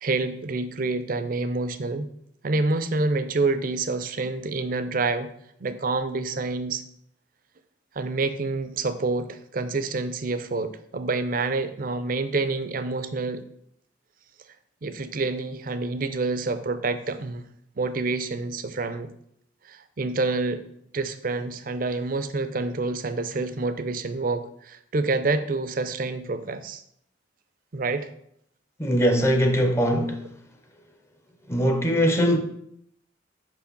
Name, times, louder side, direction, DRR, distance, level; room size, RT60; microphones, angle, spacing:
voice 1, 0.0-2.1 2.4-5.3 5.6-6.8 8.0-13.4 14.8-17.5 17.8-19.1 19.6-20.6 20.9-26.8 27.7-28.1, right 3 dB, 50° right, 0.5 m, -27 dB
voice 2, 28.8-30.2 31.5-32.4, equal, 15° left, 0.6 m, -21 dB
5.1 x 4.8 x 5.2 m
head